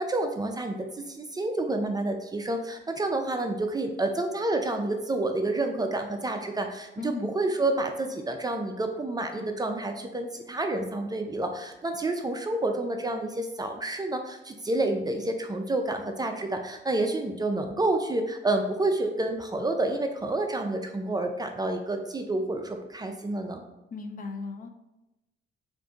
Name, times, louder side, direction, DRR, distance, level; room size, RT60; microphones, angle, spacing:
voice 1, 0.0-23.6, right 2 dB, 20° right, 5 dB, 0.4 m, -29 dB
voice 2, 7.0-7.3 23.9-24.7, left 4 dB, 45° left, 6 dB, 0.5 m, -36 dB
3.6 x 2.6 x 3.7 m, 0.97 s
cardioid pair, 90°, 20 cm